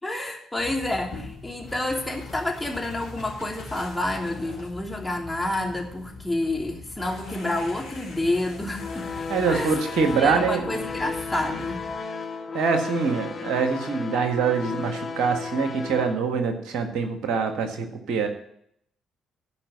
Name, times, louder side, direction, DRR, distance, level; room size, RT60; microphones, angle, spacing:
voice 1, 0.0-9.1 9.5-9.7 10.1-11.9, left 1 dB, 10° left, 0 dB, 3.0 m, -29 dB
sound 1, 0.6-11.9, left 3 dB, 80° left, 2.9 m, -42 dB
sound 2, 8.8-16.1, left 5 dB, 45° left, 1.6 m, -34 dB
voice 2, 9.3-10.7 12.5-18.3, right 5 dB, 65° right, 5 dB, 1.6 m, -24 dB
13.5 x 5.3 x 7.1 m, 0.69 s
figure-of-eight pair, 45°, 0 cm